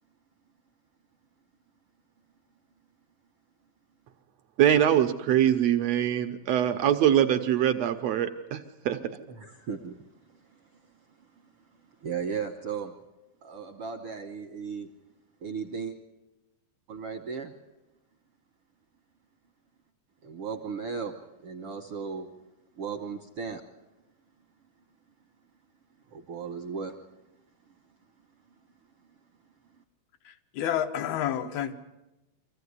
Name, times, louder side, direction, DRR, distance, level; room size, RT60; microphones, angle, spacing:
voice 1, 4.6-8.6 8.8-9.0, right 10 dB, 90° right, 1.4 m, -23 dB
voice 2, 9.3-9.9 12.0-12.9 13.4-14.9 15.4-15.9 16.9-17.5 20.2-21.1 21.4-22.3 22.8-23.6 26.1-26.9, right 6 dB, 70° right, 1.4 m, -35 dB
voice 3, 30.2-31.7, left 10 dB, 80° left, 3.1 m, -30 dB
25.0 x 15.5 x 9.6 m
omnidirectional pair, 4.3 m